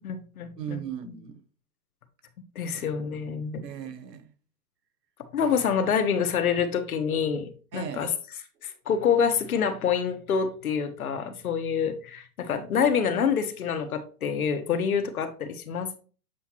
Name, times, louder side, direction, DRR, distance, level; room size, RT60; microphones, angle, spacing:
voice 1, 0.0-0.8 2.5-3.6 5.3-8.1 8.6-16.0, left 7 dB, 65° left, 1.3 m, -27 dB
voice 2, 0.6-1.4 2.7-2.9 3.6-4.3 7.7-8.1, right 8 dB, 85° right, 1.3 m, -37 dB
8.0 x 4.9 x 3.0 m
hypercardioid pair, 170°, 47 cm